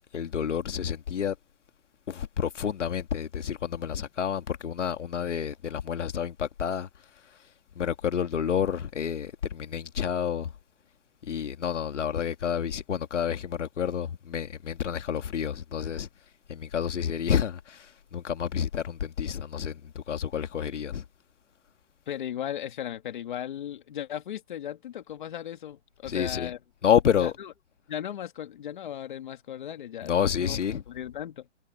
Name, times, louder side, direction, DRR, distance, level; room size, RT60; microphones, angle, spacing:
voice 1, 0.1-1.4 2.1-6.9 7.8-10.5 11.2-16.1 16.5-21.0 26.1-26.5 26.8-27.3 30.0-30.8, left 8 dB, 75° left, 1.9 m, -29 dB
voice 2, 22.1-26.6 27.2-27.5 27.9-30.6 30.9-31.5, left 10 dB, 40° left, 2.2 m, -36 dB
hypercardioid pair, 175°, 36 cm